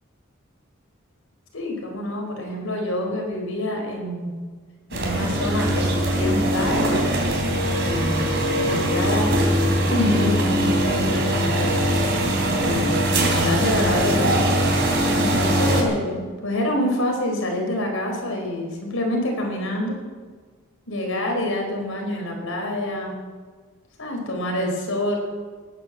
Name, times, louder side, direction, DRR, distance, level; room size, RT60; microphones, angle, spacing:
voice 1, 1.5-4.3 4.9-7.0 7.8-8.3 8.6-11.8 12.6-14.4 15.2-20.0 20.9-23.1 24.0-25.2, left 1 dB, 80° left, 1 dB, 4.6 m, -26 dB
sound 1, 4.9-15.8, right 1 dB, 55° right, 3.6 m, -21 dB
18.5 x 9.5 x 7.5 m, 1.5 s
head